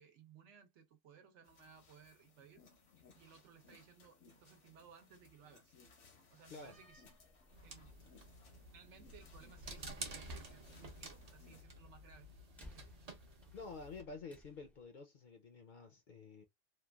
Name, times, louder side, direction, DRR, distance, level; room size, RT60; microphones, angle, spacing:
voice 1, 0.0-2.6 3.1-5.8 6.3-7.0 7.6-8.0 8.7-12.3 12.7-12.9, right 7 dB, 75° right, 1.0 m, -61 dB
sound 1, 1.4-11.6, left 4 dB, 80° left, 1.2 m, -65 dB
Slam, 6.5-14.9, left 1 dB, ahead, 0.3 m, -64 dB
sound 2, 7.5-14.0, right 2 dB, 40° right, 0.6 m, -51 dB
voice 2, 13.5-16.4, left 4 dB, 55° left, 0.6 m, -50 dB
3.1 x 2.3 x 2.2 m
omnidirectional pair, 1.2 m